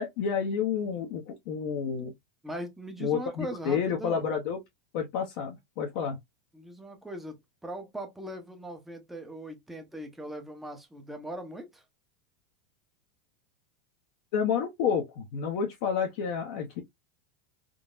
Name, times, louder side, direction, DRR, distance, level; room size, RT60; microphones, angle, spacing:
voice 1, 0.0-2.1 3.0-4.6 4.9-6.2 14.3-16.8, left 7 dB, 60° left, 0.7 m, -30 dB
voice 2, 2.4-4.2 6.5-11.8, right 1 dB, 5° right, 0.7 m, -40 dB
3.7 x 2.0 x 2.4 m
supercardioid pair, 145°, 4 cm